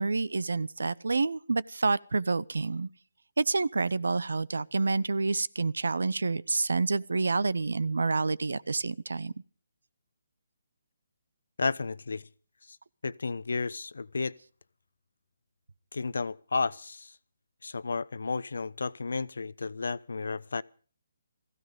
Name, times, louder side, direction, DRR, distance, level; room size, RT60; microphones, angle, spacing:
voice 1, 0.0-2.9 3.4-9.3, right 3 dB, 85° right, 0.8 m, -28 dB
voice 2, 11.6-12.2 12.7-12.8 13.0-14.3 15.9-17.1 17.6-20.6, left 4 dB, 80° left, 0.8 m, -32 dB
16.5 x 15.5 x 5.1 m
hypercardioid pair, 160°, 0 cm